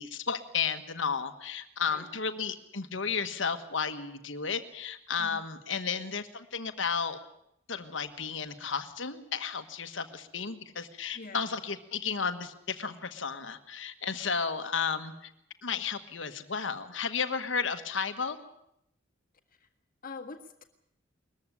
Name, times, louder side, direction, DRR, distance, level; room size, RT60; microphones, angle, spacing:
voice 1, 0.0-7.2 7.7-15.3 15.6-18.4, left 6 dB, 70° left, 8 dB, 1.5 m, -33 dB
voice 2, 1.9-2.2 5.2-5.4 11.1-11.4 19.6-19.7 20.0-20.6, left 3 dB, 45° left, 6 dB, 1.7 m, -45 dB
21.0 x 14.5 x 9.9 m, 0.78 s
head